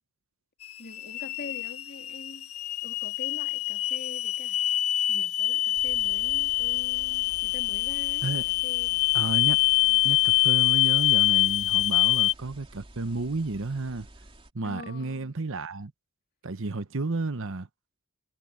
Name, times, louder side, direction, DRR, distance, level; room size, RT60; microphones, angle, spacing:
sound 1, 0.6-12.3, left 17 dB, 75° left, 0.7 m, -25 dB
voice 1, 0.8-2.5 2.8-4.6 5.1-9.1 9.9-10.0 14.6-15.3, left 3 dB, 50° left, 3.1 m, -45 dB
sound 2, 5.7-14.5, right 1 dB, 25° right, 3.1 m, -50 dB
voice 2, 9.1-9.6 10.0-14.1 14.5-15.9 16.4-17.7, right 3 dB, 65° right, 1.0 m, -32 dB
head